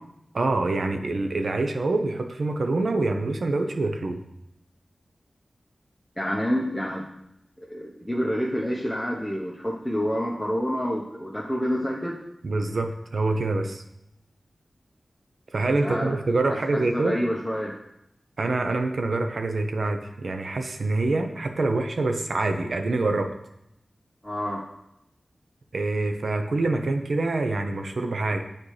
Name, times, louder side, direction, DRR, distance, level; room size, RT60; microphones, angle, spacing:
voice 1, 0.3-4.2 12.4-13.8 15.5-17.2 18.4-23.3 25.7-28.4, right 2 dB, 75° right, 5 dB, 0.7 m, -25 dB
voice 2, 6.2-7.1 7.7-12.2 15.8-16.1 16.5-17.7 24.2-24.6, equal, 5° left, -3 dB, 1.0 m, -28 dB
8.5 x 4.4 x 3.2 m, 0.81 s
cardioid pair, 50°, 0 cm